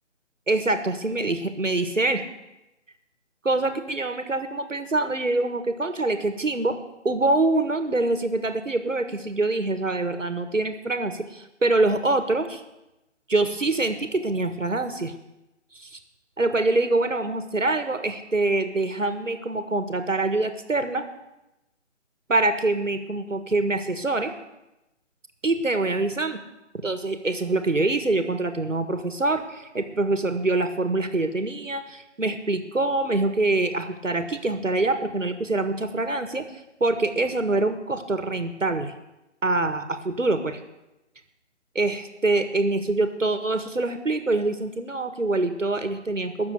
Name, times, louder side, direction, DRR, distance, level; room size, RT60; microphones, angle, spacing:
voice 1, 0.5-2.2 3.4-6.8 7.0-12.6 13.3-15.1 15.7-16.0 16.4-21.1 22.3-24.3 25.4-26.4 26.7-36.4 36.8-38.9 39.4-40.6 41.8-46.5, right 2 dB, 90° right, 8 dB, 1.8 m, -25 dB
19.0 x 7.1 x 7.9 m, 0.96 s
figure-of-eight pair, 150°, 37 cm